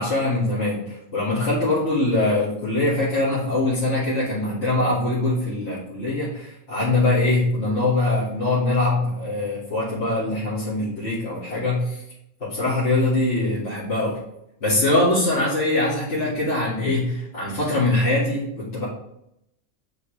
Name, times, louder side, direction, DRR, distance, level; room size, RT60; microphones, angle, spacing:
voice 1, 0.0-12.0 12.4-14.2 14.6-18.8, left 2 dB, 55° left, -10 dB, 2.5 m, -23 dB
9.2 x 4.1 x 3.2 m, 0.79 s
omnidirectional pair, 1.3 m